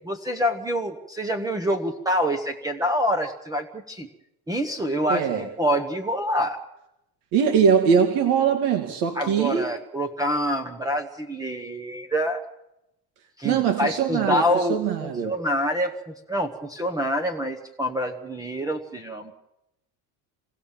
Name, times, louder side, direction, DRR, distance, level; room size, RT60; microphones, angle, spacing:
voice 1, 0.1-4.1 4.5-6.6 9.1-12.4 13.4-19.3, equal, 10° right, 7 dB, 1.1 m, -26 dB
voice 2, 5.1-5.4 7.3-9.7 13.4-14.4 14.7-15.3, right 7 dB, 70° right, 5 dB, 2.5 m, -21 dB
26.5 x 18.5 x 7.4 m, 0.89 s
cardioid pair, 165°, 42 cm